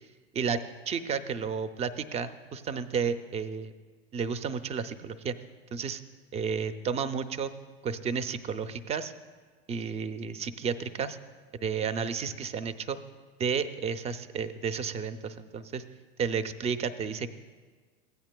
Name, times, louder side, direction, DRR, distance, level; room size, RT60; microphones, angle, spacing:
voice 1, 0.3-3.7 4.1-5.4 5.7-6.0 6.3-7.5 7.8-9.1 9.7-11.2 11.6-13.0 13.4-15.8 16.2-17.3, right 6 dB, 20° right, 12 dB, 0.4 m, -32 dB
15.5 x 8.8 x 2.2 m, 1.5 s
hypercardioid pair, 95°, 31 cm